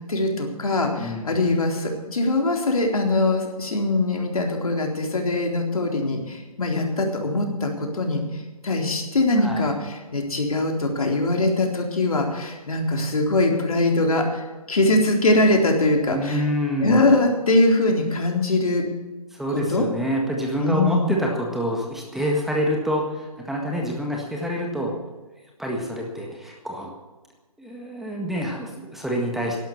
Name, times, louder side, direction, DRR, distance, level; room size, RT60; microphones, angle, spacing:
voice 1, 0.1-8.2 8.6-14.4 14.7-16.4 16.8-18.8 19.5-19.9 20.6-21.0, left 2 dB, 70° left, 1 dB, 3.8 m, -22 dB
voice 2, 1.0-1.3 9.4-9.7 16.1-17.1 19.3-24.9 25.6-26.9 27.6-29.6, equal, ahead, -1 dB, 1.7 m, -27 dB
12.0 x 12.0 x 7.3 m, 1.2 s
figure-of-eight pair, 140°, 19 cm